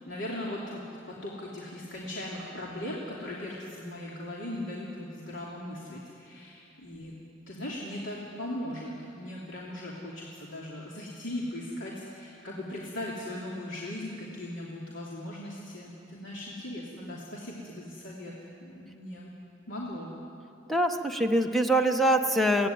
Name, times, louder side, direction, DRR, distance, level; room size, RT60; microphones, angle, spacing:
voice 1, 0.1-7.2 7.5-18.3 18.6-19.3 19.7-20.1, left 1 dB, 75° left, -5 dB, 2.9 m, -38 dB
voice 2, 20.7-22.7, right 1 dB, ahead, 4 dB, 1.1 m, -24 dB
22.5 x 17.0 x 9.5 m, 2.7 s
head